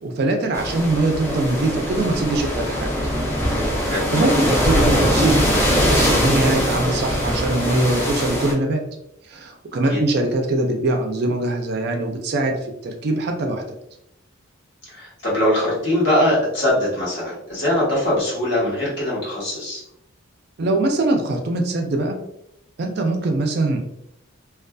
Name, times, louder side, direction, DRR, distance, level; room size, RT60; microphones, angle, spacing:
voice 1, 0.0-2.9 3.8-8.8 9.3-13.6 20.6-22.2 22.8-23.8, right 2 dB, 50° right, 3 dB, 0.4 m, -22 dB
sound 1, 0.5-8.5, equal, 10° left, 0.5 m, -21 dB
voice 2, 14.9-19.8, left 1 dB, 55° left, -6 dB, 1.2 m, -21 dB
2.5 x 2.3 x 2.2 m, 0.78 s
head